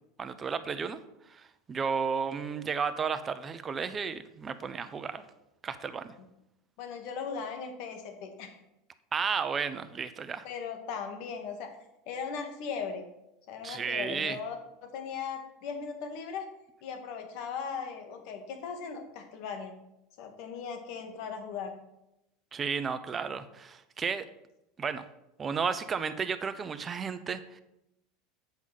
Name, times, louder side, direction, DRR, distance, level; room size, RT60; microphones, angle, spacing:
voice 1, 0.2-1.0 1.3-5.2 5.6-6.1 9.1-10.4 13.6-14.4 22.5-24.2 24.8-25.1 25.4-27.6, right 6 dB, 25° right, 11 dB, 0.7 m, -33 dB
voice 2, 6.8-8.6 10.4-11.8 12.1-13.0 13.5-16.5 16.8-19.7 20.2-21.7, left 6 dB, 65° left, 6 dB, 1.8 m, -38 dB
8.2 x 5.5 x 6.5 m, 0.86 s
supercardioid pair, 120°, 0 cm